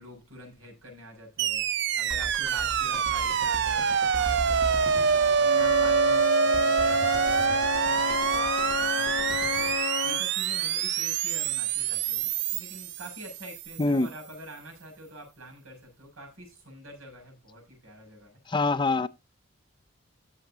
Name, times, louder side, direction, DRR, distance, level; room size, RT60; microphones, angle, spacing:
voice 1, 0.0-18.4, right 1 dB, 90° right, 6.9 m, -46 dB
sound 1, 1.4-13.6, right 7 dB, 55° right, 0.4 m, -26 dB
sound 2, 2.1-9.8, equal, 20° right, 2.0 m, -39 dB
Wind instrument woodwind instrument, 5.4-10.3, left 7 dB, 80° left, 0.5 m, -31 dB
voice 2, 18.5-19.1, left 3 dB, 20° left, 0.5 m, -24 dB
15.5 x 7.1 x 2.8 m
head